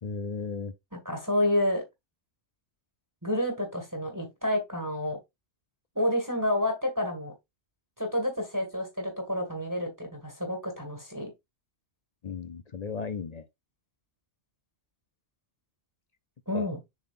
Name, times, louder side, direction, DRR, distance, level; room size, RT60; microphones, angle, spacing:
voice 1, 0.0-0.7 12.2-13.4 16.5-16.7, left 5 dB, 45° left, 0.6 m, -35 dB
voice 2, 1.0-1.8 3.2-5.2 5.9-7.3 8.0-11.3 16.5-16.8, left 1 dB, 15° right, 1.9 m, -29 dB
7.2 x 5.9 x 2.5 m
omnidirectional pair, 1.2 m